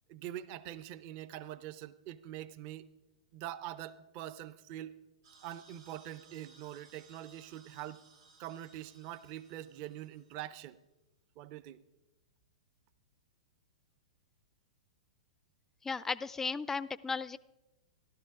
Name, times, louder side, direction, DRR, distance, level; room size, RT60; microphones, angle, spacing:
voice 1, 0.1-2.9 3.3-5.0 5.4-8.0 8.4-10.8 11.4-11.8, right 12 dB, 40° right, 15 dB, 0.5 m, -44 dB
sound 1, 5.2-10.5, right 4 dB, 60° right, 2.3 m, -62 dB
voice 2, 15.8-17.4, left 4 dB, 10° left, 18 dB, 0.3 m, -35 dB
14.0 x 12.5 x 3.6 m, 1.0 s
figure-of-eight pair, 105°, 3 cm